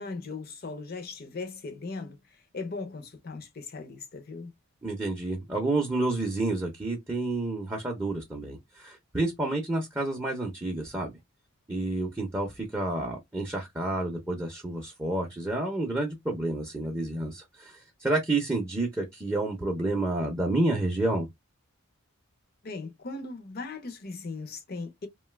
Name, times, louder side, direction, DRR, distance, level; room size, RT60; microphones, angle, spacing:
voice 1, 0.0-4.5 22.6-25.1, left 3 dB, 45° left, 0.5 m, -38 dB
voice 2, 4.8-11.1 11.7-21.3, right 2 dB, 10° right, 0.5 m, -29 dB
2.6 x 2.2 x 3.2 m
head